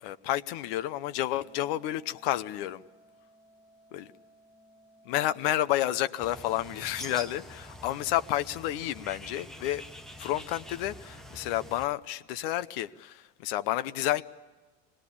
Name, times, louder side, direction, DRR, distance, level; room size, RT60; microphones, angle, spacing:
voice 1, 0.0-2.8 3.9-4.1 5.1-9.8 10.2-14.2, left 14 dB, 70° left, 12 dB, 0.8 m, -30 dB
Organ, 1.3-12.3, right 1 dB, 40° left, 4.9 m, -60 dB
Bird, 6.2-11.8, equal, ahead, 0.9 m, -46 dB
25.5 x 20.5 x 8.6 m, 1.3 s
cardioid pair, 180°, 30 cm